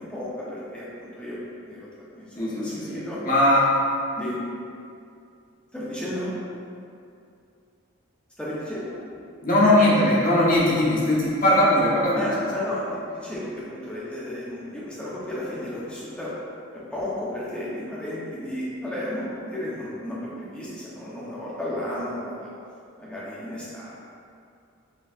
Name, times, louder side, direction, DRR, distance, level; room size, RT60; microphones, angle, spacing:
voice 1, 0.0-1.4 1.6-3.2 4.2-4.4 5.7-6.4 8.4-9.0 12.1-16.3 16.7-22.5 23.0-23.9, left 1 dB, 5° left, -8 dB, 0.8 m, -33 dB
voice 2, 2.4-3.7 9.4-12.3, left 1 dB, 40° left, -7 dB, 1.0 m, -20 dB
6.7 x 3.1 x 2.5 m, 2.5 s
head